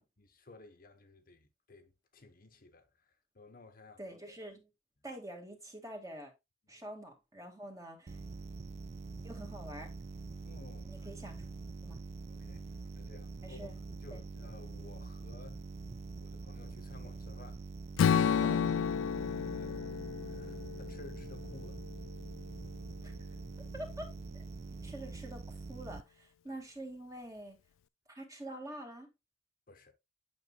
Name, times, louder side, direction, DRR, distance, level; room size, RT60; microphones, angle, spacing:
voice 1, 0.0-4.1 6.7-6.9 10.4-11.1 11.9-12.0 12.3-15.6 16.2-17.7 19.2-21.8 26.5-26.6 29.7-29.9, left 2 dB, 45° left, 1.1 m, -56 dB
voice 2, 4.0-4.7 5.0-6.3 6.7-8.2 9.2-9.9 10.9-11.4 11.8-12.0 13.4-13.8 14.1-14.2 18.4-18.6 23.0-23.2 23.7-24.1 24.8-27.6 28.1-29.1, right 1 dB, 15° right, 1.9 m, -46 dB
sound 1, 8.1-26.0, right 3 dB, 35° right, 0.4 m, -45 dB
Strum, 18.0-22.2, left 7 dB, 90° left, 0.3 m, -31 dB
9.5 x 6.2 x 2.3 m
head